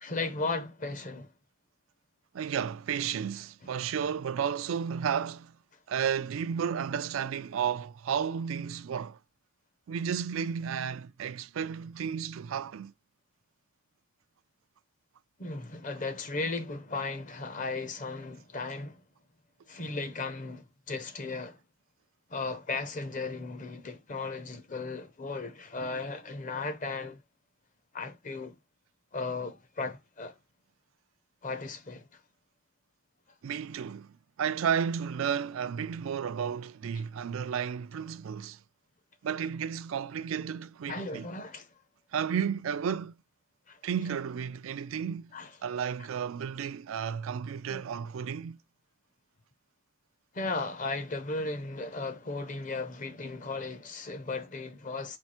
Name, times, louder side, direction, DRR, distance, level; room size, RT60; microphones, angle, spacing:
voice 1, 0.0-1.3 15.4-19.0 19.7-21.6 22.3-27.2 27.9-28.6 29.1-30.3 31.4-32.1 40.9-41.7 43.7-43.8 45.3-45.5 47.7-47.8 50.3-55.2, left 3 dB, 40° left, 0.8 m, -36 dB
voice 2, 2.3-5.6 5.9-9.2 9.9-12.9 33.4-38.6 39.2-41.3 42.1-43.1 43.8-45.3 45.6-48.6, right 7 dB, 80° right, 0.4 m, -32 dB
4.6 x 2.4 x 4.3 m
head